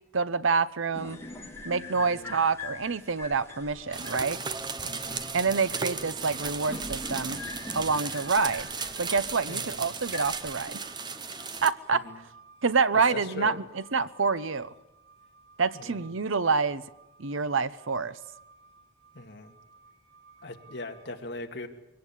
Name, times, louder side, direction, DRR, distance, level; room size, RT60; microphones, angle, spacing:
voice 1, 0.1-1.2 1.6-4.4 5.3-7.4 7.7-8.7 9.0-10.8 11.6-12.0 12.6-14.7 15.6-16.8 17.2-18.1, right 5 dB, 70° right, 15 dB, 0.8 m, -27 dB
sound 1, 0.9-10.5, left 2 dB, 15° left, 2.5 m, -43 dB
voice 2, 2.0-2.3 4.8-5.3 9.5-9.8 12.1-12.2 13.1-13.6 15.7-16.0 19.1-19.5 20.4-21.7, left 2 dB, 55° left, 3 dB, 2.2 m, -40 dB
sound 2, 3.5-21.1, right 4 dB, 55° right, 2.5 m, -57 dB
sound 3, 3.9-11.7, right 5 dB, 20° right, 0.9 m, -36 dB
23.0 x 18.0 x 8.5 m, 0.96 s
head